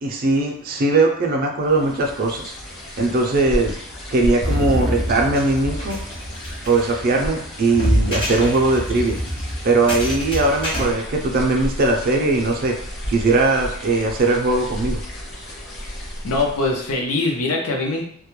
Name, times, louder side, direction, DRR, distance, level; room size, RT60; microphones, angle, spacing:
voice 1, 0.0-2.5 3.0-3.8 4.1-6.0 6.7-9.2 9.6-12.7 13.1-15.0, right 3 dB, 40° right, 1 dB, 0.4 m, -20 dB
sound 1, 1.6-17.0, equal, 50° left, 0.8 m, -33 dB
sound 2, 4.4-10.8, equal, 25° left, 0.5 m, -25 dB
voice 2, 15.8-18.0, left 3 dB, 90° left, 1 dB, 0.6 m, -23 dB
2.2 x 2.1 x 3.0 m, 0.66 s
head